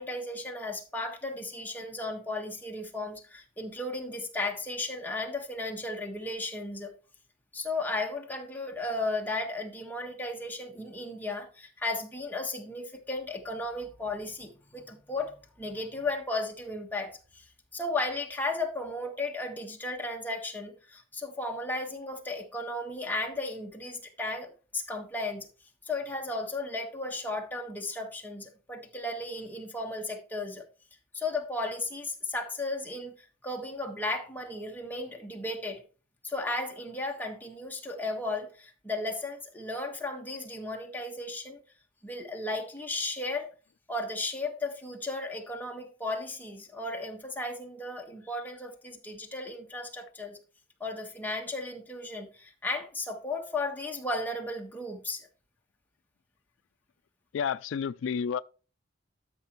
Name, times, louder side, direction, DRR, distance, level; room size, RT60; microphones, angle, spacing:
voice 1, 0.0-6.9 7.5-25.5 25.8-30.7 31.1-35.8 36.2-41.6 42.0-43.5 43.9-50.4 50.8-55.3, left 2 dB, 10° left, 1.5 m, -35 dB
voice 2, 57.3-58.4, left 7 dB, 85° left, 0.3 m, -30 dB
12.5 x 5.8 x 3.1 m
head